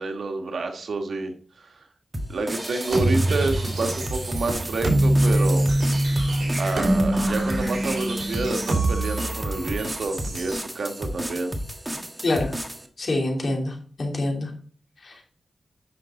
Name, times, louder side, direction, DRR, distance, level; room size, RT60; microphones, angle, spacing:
voice 1, 0.0-1.8 2.3-5.7 6.6-11.5, right 3 dB, 80° right, 4 dB, 1.4 m, -29 dB
sound 1, 2.1-12.9, equal, 15° right, 1.4 m, -33 dB
sound 2, 2.9-10.6, right 1 dB, 60° right, 3.7 m, -24 dB
voice 2, 12.2-12.5 13.0-14.5 15.0-15.2, left 2 dB, 65° left, 1 dB, 3.0 m, -26 dB
9.5 x 6.2 x 3.8 m, 0.43 s
wide cardioid pair, 75°, 0 cm